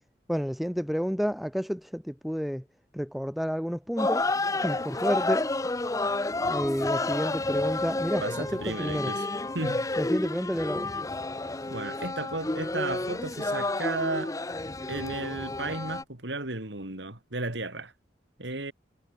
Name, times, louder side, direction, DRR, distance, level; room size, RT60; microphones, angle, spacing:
voice 1, 0.3-2.6 2.9-4.3 4.6-5.5 6.4-9.1 10.0-11.0, equal, ahead, 1.8 m, -30 dB
sound 1, 4.0-16.0, left 2 dB, 20° left, 0.7 m, -30 dB
voice 2, 8.2-9.3 9.5-9.9 11.7-14.4 14.9-17.9 18.4-18.7, right 2 dB, 75° right, 3.5 m, -34 dB
head